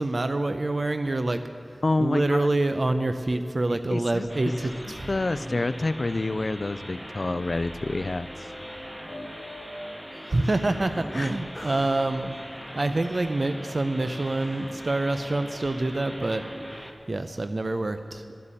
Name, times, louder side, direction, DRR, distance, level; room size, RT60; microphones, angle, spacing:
voice 1, 0.0-1.4 2.0-5.1 10.3-12.3 12.7-16.4 17.1-18.2, right 2 dB, 55° right, 9 dB, 0.6 m, -26 dB
voice 2, 1.8-2.5 3.9-4.7 5.1-8.5 11.1-11.3, left 2 dB, 60° left, 14 dB, 0.4 m, -28 dB
sound 1, 4.1-11.0 11.5-12.5 13.0-14.6, equal, 10° left, 3.9 m, -45 dB
sound 2, 4.3-16.9, equal, 10° right, 1.4 m, -41 dB
13.0 x 8.3 x 8.9 m, 2.8 s
wide cardioid pair, 50°, 0 cm